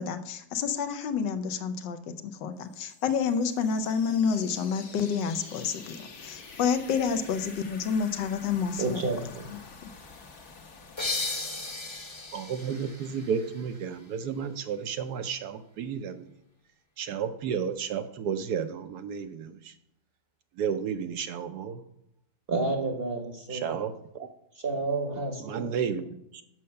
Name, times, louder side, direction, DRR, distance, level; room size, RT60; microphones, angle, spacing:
voice 1, 0.0-6.0 6.2-9.0 9.5-9.6, left 6 dB, 80° left, 10 dB, 1.4 m, -29 dB
sound 1, 2.7-14.4, left 4 dB, 60° left, 1.6 m, -48 dB
voice 2, 8.8-9.5 22.5-23.6 24.6-25.8, right 3 dB, 40° right, 4 dB, 0.9 m, -30 dB
sound 2, 11.0-14.4, left 3 dB, 20° left, 0.9 m, -36 dB
voice 3, 12.3-16.2 17.0-19.7 20.6-21.8 23.5-24.3 25.4-26.4, right 7 dB, 70° right, 9 dB, 1.0 m, -32 dB
7.7 x 5.6 x 6.5 m, 0.80 s
omnidirectional pair, 1.9 m